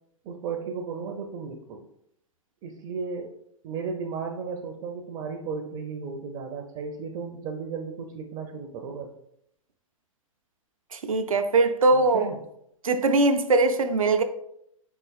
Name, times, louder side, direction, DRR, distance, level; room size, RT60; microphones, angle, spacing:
voice 1, 0.2-1.9 2.6-3.4 3.6-9.1 11.9-12.4, right 5 dB, 30° right, 0.5 m, -34 dB
voice 2, 10.9-12.3 12.8-14.2, right 3 dB, 80° right, 0.5 m, -21 dB
4.7 x 3.9 x 2.3 m
figure-of-eight pair, 110°, 17 cm